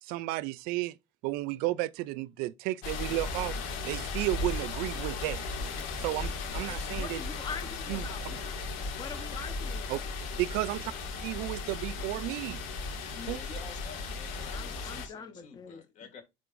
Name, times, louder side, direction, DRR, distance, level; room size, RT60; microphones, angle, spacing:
voice 1, 0.0-1.0 1.2-3.6 3.9-5.4 6.0-7.2 7.9-8.1 9.9-10.0 10.4-10.9 11.2-12.6 13.3-13.4, right 18 dB, 70° right, 0.4 m, -33 dB
sound 1, 2.8-15.1, left 4 dB, 90° left, 2.2 m, -36 dB
voice 2, 6.5-10.1 14.3-15.8, left 5 dB, 25° left, 1.0 m, -44 dB
voice 3, 13.1-16.2, left 6 dB, 50° left, 2.1 m, -49 dB
11.0 x 3.6 x 2.6 m
cardioid pair, 145°, 16 cm